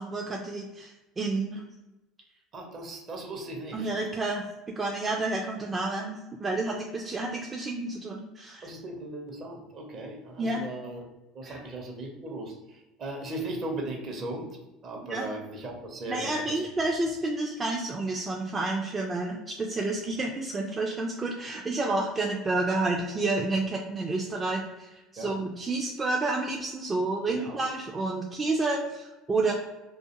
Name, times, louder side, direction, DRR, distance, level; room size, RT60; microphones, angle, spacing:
voice 1, 0.0-1.6 3.7-4.4 4.8-8.7 10.4-10.6 11.4-11.6 15.1-15.3 16.1-29.5, right 2 dB, 25° right, 0 dB, 0.3 m, -30 dB
voice 2, 2.5-3.9 8.6-11.1 11.3-14.6 14.8-16.7 25.2-25.3 27.3-27.6, right 2 dB, 50° right, 2 dB, 0.7 m, -37 dB
2.4 x 2.4 x 2.8 m, 1.0 s
hypercardioid pair, 75°, 0 cm